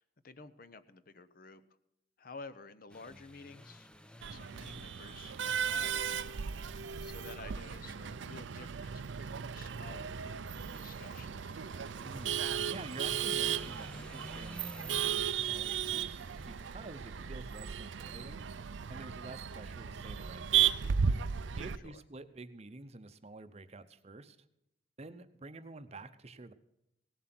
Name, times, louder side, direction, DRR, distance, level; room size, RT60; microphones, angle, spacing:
voice 1, 0.0-1.6 2.2-3.9 4.3-6.3 6.6-6.7 7.0-9.0 9.3-11.6, left 4 dB, 50° left, 14 dB, 0.7 m, -52 dB
sound 1, 2.9-21.8, left 1 dB, 5° left, 0.5 m, -55 dB
Male speech man speaking / Laughter / Chatter, 4.2-21.8, right 8 dB, 85° right, 0.5 m, -35 dB
voice 2, 12.0-18.4 18.9-20.7 21.6-24.4 25.0-26.5, right 2 dB, 35° right, 11 dB, 0.7 m, -49 dB
17.5 x 7.6 x 6.0 m, 0.81 s
head